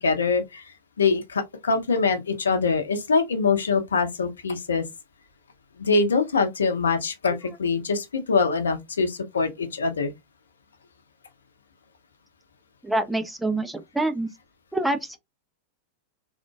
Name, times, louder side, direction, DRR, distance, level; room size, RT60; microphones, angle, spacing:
voice 1, 0.0-4.9 5.8-10.1, left 4 dB, 70° left, 0.7 m, -24 dB
voice 2, 12.8-14.3 14.7-15.2, right 2 dB, 5° right, 0.4 m, -26 dB
3.7 x 3.5 x 2.3 m
figure-of-eight pair, 90°, 0 cm